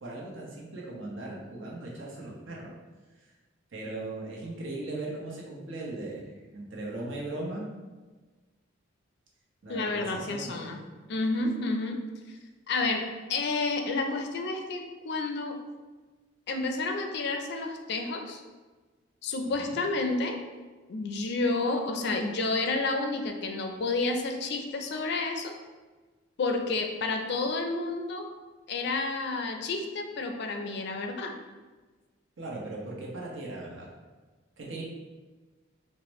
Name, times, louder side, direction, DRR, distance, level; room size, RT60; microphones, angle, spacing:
voice 1, 0.0-2.7 3.7-7.6 9.6-10.6 19.4-19.8 32.4-33.9 34.6-34.8, right 2 dB, 65° right, -4 dB, 0.9 m, -38 dB
voice 2, 9.7-10.8 11.1-12.0 12.7-15.6 16.5-18.4 19.2-20.4 20.9-25.5 26.4-28.3 28.7-31.3, left 3 dB, 55° left, 4 dB, 0.4 m, -30 dB
4.8 x 2.1 x 3.0 m, 1.3 s
head